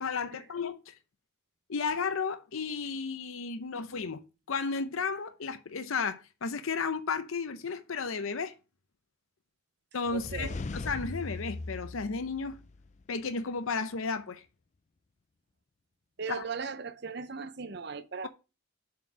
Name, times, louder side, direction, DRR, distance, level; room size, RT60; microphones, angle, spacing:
voice 1, 0.0-0.9 1.7-4.2 4.5-8.6 9.9-12.6 13.1-14.4 16.3-16.5, left 5 dB, 80° left, 0.7 m, -33 dB
sound 1, 10.1-13.0, left 3 dB, 35° left, 0.4 m, -39 dB
voice 2, 10.1-10.6 16.2-18.3, right 5 dB, 50° right, 0.7 m, -38 dB
7.3 x 4.4 x 6.1 m
head